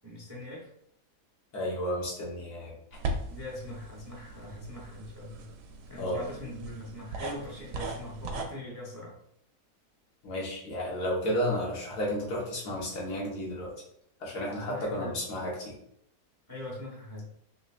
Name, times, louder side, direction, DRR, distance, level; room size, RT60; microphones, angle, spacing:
voice 1, 0.0-0.7 3.3-5.5 5.9-9.1 14.5-15.2 16.5-17.3, left 1 dB, 20° right, -4 dB, 0.5 m, -42 dB
voice 2, 1.5-2.7 6.0-6.5 10.2-13.7 14.2-15.8, equal, 75° left, -4 dB, 1.7 m, -32 dB
sound 1, 2.9-8.4, right 2 dB, 85° right, 1.2 m, -39 dB
3.8 x 3.2 x 2.4 m, 0.74 s
omnidirectional pair, 1.8 m